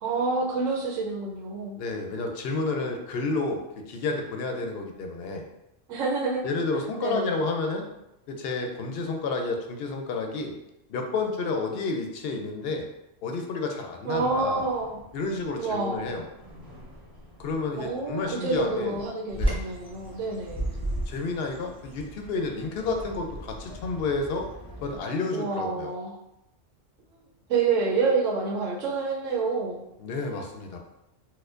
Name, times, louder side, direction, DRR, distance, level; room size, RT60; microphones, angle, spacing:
voice 1, 0.0-1.8 5.9-6.4 6.7-7.4 14.1-15.0 15.6-16.1 17.8-20.7 25.3-26.1 27.1-27.2 27.5-29.8, right 4 dB, 90° right, -2 dB, 1.0 m, -28 dB
voice 2, 1.7-3.6 3.9-5.4 6.4-7.8 8.3-10.5 10.9-12.8 13.2-14.6 15.1-16.2 17.4-18.9 19.3-19.6 21.1-24.5 24.8-25.9 30.0-30.8, left 3 dB, 65° left, 3 dB, 0.7 m, -30 dB
sound 1, 14.1-19.1, equal, 20° right, 0.8 m, -48 dB
Bird vocalization bird call bird song, 19.3-25.0, right 1 dB, 5° left, 0.6 m, -34 dB
4.4 x 2.2 x 2.4 m, 0.89 s
omnidirectional pair, 1.3 m